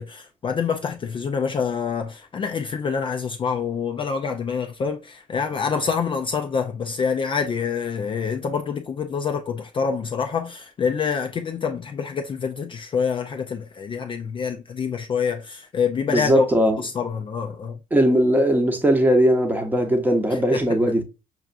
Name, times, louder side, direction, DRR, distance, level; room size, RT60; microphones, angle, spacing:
voice 1, 0.0-16.5 16.8-17.8 20.3-20.6, left 6 dB, 30° left, 0.4 m, -26 dB
voice 2, 16.1-16.8 17.9-21.0, equal, 10° right, 0.8 m, -19 dB
5.6 x 2.4 x 2.4 m
cardioid pair, 110°, 17 cm